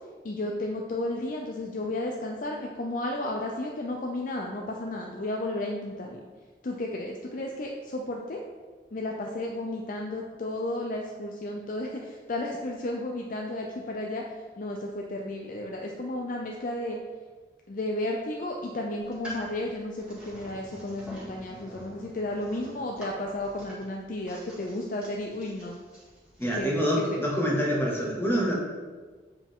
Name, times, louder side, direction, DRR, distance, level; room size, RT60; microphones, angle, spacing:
voice 1, 0.2-6.2 6.6-8.4 8.9-14.2 14.6-17.0 17.7-25.8 26.5-26.8 27.1-27.2, left 1 dB, 45° left, 0 dB, 0.5 m, -33 dB
sound 1, 19.0-26.6, equal, 5° right, 2.0 m, -46 dB
voice 2, 26.4-28.5, equal, 15° left, -3 dB, 1.3 m, -26 dB
7.8 x 4.9 x 3.6 m, 1.4 s
head